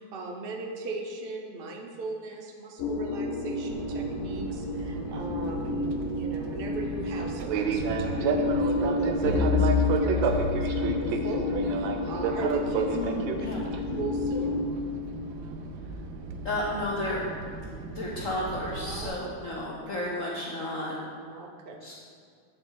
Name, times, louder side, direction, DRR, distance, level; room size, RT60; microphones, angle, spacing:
voice 1, 0.0-13.0 13.3-13.5 14.0-14.6 18.8-19.1 19.9-20.0 21.2-21.9, right 2 dB, 60° right, 1 dB, 0.5 m, -38 dB
sound 1, 2.8-14.7, left 3 dB, 90° left, 0.7 m, -31 dB
Fixed-wing aircraft airplane, 3.7-19.1, right 5 dB, 80° right, 1.4 m, -32 dB
sound 2, 9.2-11.8, left 5 dB, 35° left, 1.5 m, -28 dB
voice 2, 12.9-13.6 16.4-17.3 17.9-21.0 21.8-21.9, left 1 dB, 55° left, -4 dB, 1.0 m, -32 dB
8.7 x 6.8 x 3.9 m, 2.2 s
omnidirectional pair, 2.2 m